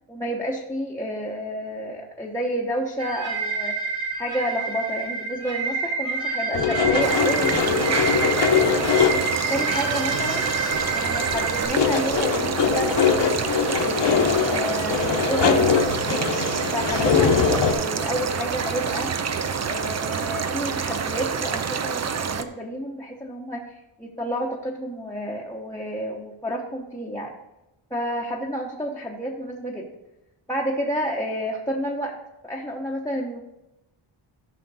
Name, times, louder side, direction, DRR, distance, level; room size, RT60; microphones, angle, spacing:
voice 1, 0.1-8.7 9.5-10.4 10.9-16.2 16.7-19.1 19.7-27.3 27.9-29.9 30.5-32.2 32.4-33.4, equal, 5° left, -3 dB, 0.8 m, -30 dB
sound 1, 3.0-11.6, right 4 dB, 60° right, 2.8 m, -28 dB
sound 2, 6.5-9.4 9.7-9.8 10.1-11.0 11.2-17.7, left 6 dB, 55° left, 1.1 m, -22 dB
sound 3, 7.0-22.4, right 6 dB, 35° right, 0.5 m, -27 dB
13.5 x 5.8 x 4.0 m, 0.94 s
wide cardioid pair, 155°, 50 cm